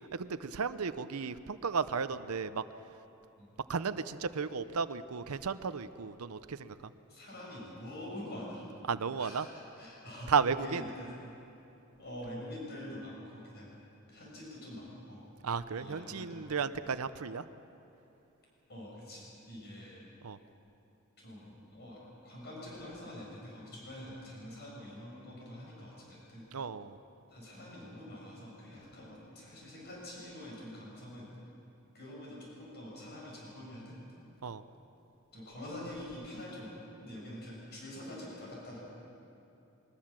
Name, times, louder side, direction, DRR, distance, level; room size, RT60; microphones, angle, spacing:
voice 1, 0.1-2.6 3.7-6.9 8.9-9.5 10.3-10.8 15.4-17.4 20.2-20.4 26.5-27.0 34.4-34.6, right 5 dB, 85° right, 12 dB, 0.7 m, -34 dB
voice 2, 7.1-8.7 9.2-10.3 10.6-11.1 12.0-13.7 14.1-15.2 15.8-16.5 18.7-20.0 21.2-26.4 27.3-31.3 31.9-34.0 35.3-38.8, left 1 dB, 50° left, -4 dB, 7.7 m, -46 dB
23.0 x 20.5 x 7.4 m, 2.9 s
head